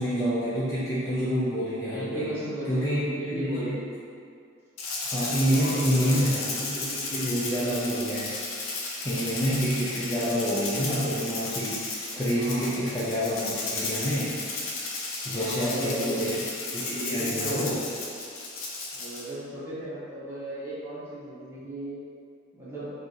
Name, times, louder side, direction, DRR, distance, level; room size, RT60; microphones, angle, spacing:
voice 1, 0.0-2.3 2.7-3.8 5.0-8.3 9.0-14.3 15.2-16.4 16.7-17.8, equal, 15° left, -11 dB, 0.4 m, -28 dB
voice 2, 1.8-3.9 5.3-6.2 6.6-6.7 12.3-12.7 15.3-16.2 16.8-17.8 18.9-22.0 22.5-22.9, right 1 dB, 10° right, -11 dB, 1.0 m, -36 dB
Rattle (instrument), 4.8-19.3, left 3 dB, 80° left, 0.6 m, -34 dB
2.8 x 2.5 x 3.8 m, 2.3 s
head